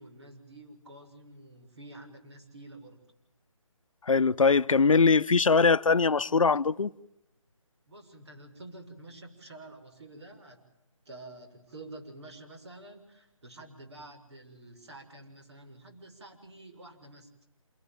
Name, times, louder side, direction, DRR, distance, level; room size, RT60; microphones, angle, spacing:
voice 1, 0.0-3.0 7.9-10.6 11.0-17.3, right 2 dB, 55° right, 6.5 m, -49 dB
voice 2, 4.1-6.9, left 4 dB, 75° left, 0.9 m, -22 dB
28.0 x 18.0 x 9.0 m
figure-of-eight pair, 165°, 17 cm